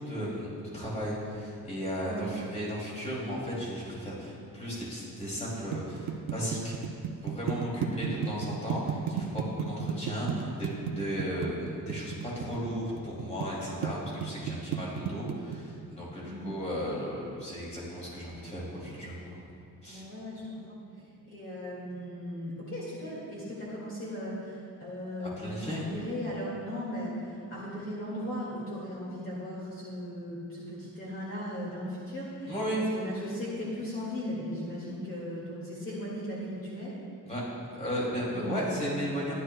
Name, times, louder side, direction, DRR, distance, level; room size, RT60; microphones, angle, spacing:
voice 1, 0.0-6.7 7.2-19.2 19.8-20.0 25.4-25.8 32.5-32.9 37.3-37.4 37.7-39.3, equal, 20° left, -5 dB, 2.5 m, -35 dB
sound 1, 5.3-13.5 13.8-15.6, right 8 dB, 90° right, 0.8 m, -32 dB
voice 2, 16.2-16.5 19.9-32.5 32.9-36.9 38.3-38.8, equal, 35° left, -7 dB, 2.0 m, -37 dB
14.0 x 11.0 x 2.2 m, 2.5 s
wide cardioid pair, 160°, 35 cm